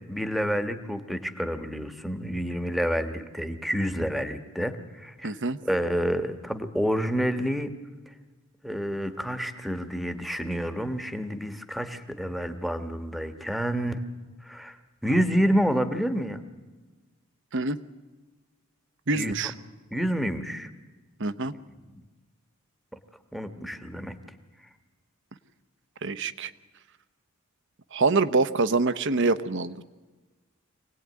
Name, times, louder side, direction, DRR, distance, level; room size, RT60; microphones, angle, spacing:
voice 1, 0.1-5.3 5.6-7.7 8.6-14.0 14.4-14.8 15.0-16.4 19.1-19.5 19.9-20.7 23.3-24.1, equal, ahead, 10 dB, 1.4 m, -28 dB
voice 2, 5.2-5.6 17.5-17.8 19.1-19.5 21.2-21.5 26.0-26.5 27.9-29.8, right 3 dB, 55° right, 13 dB, 1.0 m, -25 dB
25.5 x 18.5 x 9.6 m, 1.3 s
head